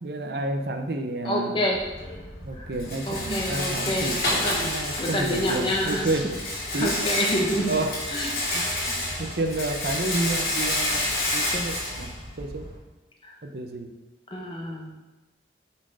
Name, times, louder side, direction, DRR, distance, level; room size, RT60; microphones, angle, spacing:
voice 1, 0.0-1.6 2.4-6.3 6.7-6.9 7.7-8.0 8.5-8.6 9.2-12.7 13.4-13.9, right 2 dB, 55° right, 5 dB, 0.6 m, -30 dB
voice 2, 1.2-1.8 2.6-2.7 3.1-4.7 5.0-6.1 6.7-7.7 8.1-8.3 8.8-9.0 13.2-13.3 14.3-14.9, equal, 25° left, 0 dB, 0.9 m, -28 dB
Rattle, 1.7-12.8, left 1 dB, 55° left, 2.3 m, -29 dB
6.1 x 4.4 x 5.3 m, 1.1 s
head